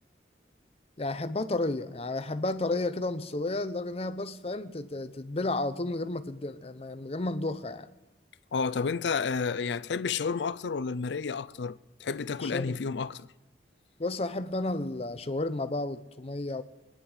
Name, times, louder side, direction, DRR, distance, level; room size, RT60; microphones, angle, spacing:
voice 1, 1.0-7.9 12.4-12.8 14.0-16.6, left 2 dB, 35° left, 0.7 m, -32 dB
voice 2, 8.5-13.3, left 5 dB, 75° left, 0.5 m, -31 dB
21.0 x 9.8 x 6.2 m
head